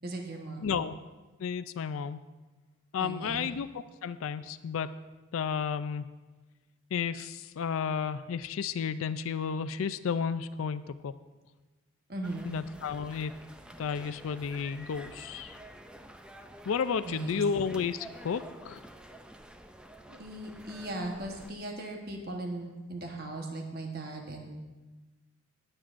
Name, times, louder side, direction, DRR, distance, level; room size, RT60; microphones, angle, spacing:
voice 1, 0.0-0.8 3.0-3.5 12.1-12.5 17.0-17.4 20.1-24.5, right 2 dB, 45° right, 2 dB, 1.1 m, -38 dB
voice 2, 0.6-1.0 1.4-2.2 2.9-4.9 5.3-6.0 6.9-11.1 12.5-13.4 13.8-15.6 16.7-18.8, left 6 dB, 80° left, 13 dB, 0.4 m, -32 dB
sound 1, 12.2-21.5, right 1 dB, 5° right, 0.4 m, -50 dB
22.0 x 7.6 x 2.5 m, 1.2 s
head